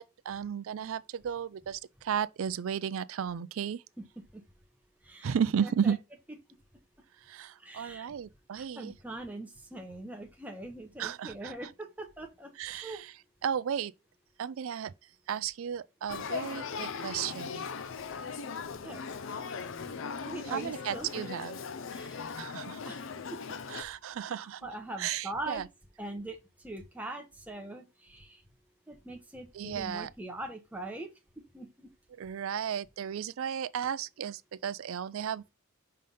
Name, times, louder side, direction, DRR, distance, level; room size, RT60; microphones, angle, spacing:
voice 1, 0.0-3.8 5.2-6.0 7.2-8.9 11.0-11.7 12.6-13.1 13.4-13.9 14.4-14.9 15.3-17.7 20.5-21.6 22.4-22.8 23.7-24.7 25.0-25.6 29.5-30.1 32.2-35.5, right 8 dB, 70° right, 0.4 m, -34 dB
voice 2, 4.0-4.4 5.0-5.3 5.6-5.9 7.6-8.1 8.5-13.0 18.8-19.6 20.0-21.3 21.9-22.6 22.8-23.4 24.3-25.7 26.0-28.4 28.9-31.1 31.5-31.9, right 2 dB, 5° right, 0.9 m, -42 dB
Male speech man speaking / Child speech kid speaking / Conversation, 16.1-23.8, left 5 dB, 60° left, 0.5 m, -39 dB
5.5 x 3.4 x 5.3 m
head